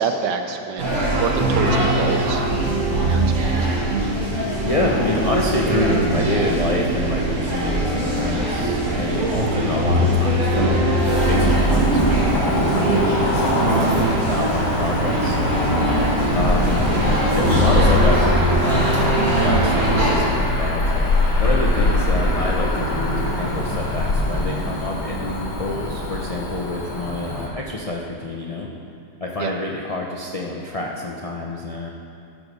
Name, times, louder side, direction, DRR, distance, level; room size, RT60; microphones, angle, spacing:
voice 1, 0.0-2.4 3.0-3.6 16.2-16.4 29.4-29.5, right 6 dB, 90° right, 5 dB, 1.4 m, -27 dB
sound 1, 0.8-20.2, right 1 dB, 55° right, 2.1 m, -21 dB
voice 2, 4.6-16.0 16.3-20.8 21.4-28.7 29.2-31.9, left 2 dB, 65° left, -2 dB, 0.3 m, -27 dB
Cricket / Motor vehicle (road), 11.1-27.5, left 1 dB, 80° left, 2.2 m, -23 dB
13.5 x 4.7 x 5.3 m, 2.6 s
omnidirectional pair, 1.8 m